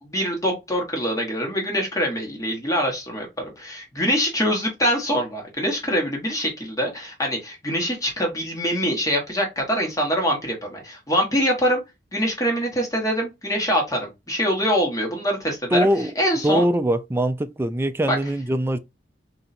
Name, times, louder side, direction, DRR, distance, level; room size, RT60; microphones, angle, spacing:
voice 1, 0.0-11.8 12.1-15.9 16.1-16.7 18.1-18.2, equal, 20° left, 1.4 m, -24 dB
voice 2, 15.7-16.1 16.4-18.8, right 1 dB, 15° right, 0.3 m, -22 dB
3.9 x 2.8 x 4.2 m
head